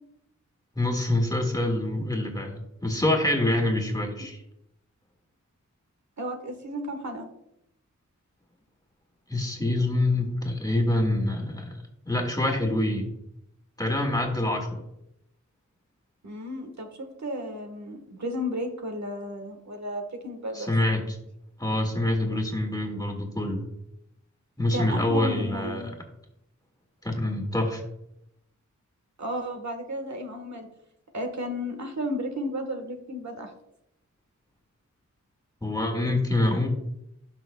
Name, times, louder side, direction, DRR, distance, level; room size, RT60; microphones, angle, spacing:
voice 1, 0.7-4.4 9.3-11.8 12.0-13.1 13.8-14.9 20.5-21.2 21.6-23.7 24.6-25.9 27.0-27.8 35.6-36.7, left 1 dB, 10° left, 2 dB, 1.8 m, -26 dB
voice 2, 6.2-7.3 16.2-20.7 24.7-25.9 29.2-30.7 31.1-33.5, equal, 65° right, 5 dB, 1.4 m, -33 dB
17.0 x 5.8 x 2.2 m, 0.80 s
wide cardioid pair, 95°, 30 cm